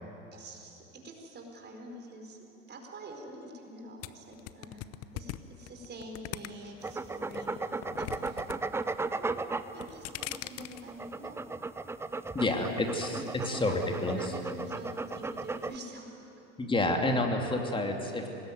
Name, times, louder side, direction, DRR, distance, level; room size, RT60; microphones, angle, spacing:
voice 1, 0.3-2.4 2.7-7.5 7.9-8.5 9.1-11.4 12.5-12.7 13.1-13.7 14.2-16.1, right 1 dB, 25° right, 1 dB, 4.7 m, -46 dB
sound 1, 4.0-6.9 7.3-8.6 8.8-9.3 9.7-10.8, left 16 dB, 40° left, 0.9 m, -40 dB
sound 2, 6.8-15.8, right 3 dB, 5° right, 0.6 m, -35 dB
voice 2, 12.3-14.3 16.6-18.3, left 2 dB, 15° left, 2 dB, 2.8 m, -29 dB
24.5 x 20.5 x 9.5 m, 3.0 s
figure-of-eight pair, 85°, 40 cm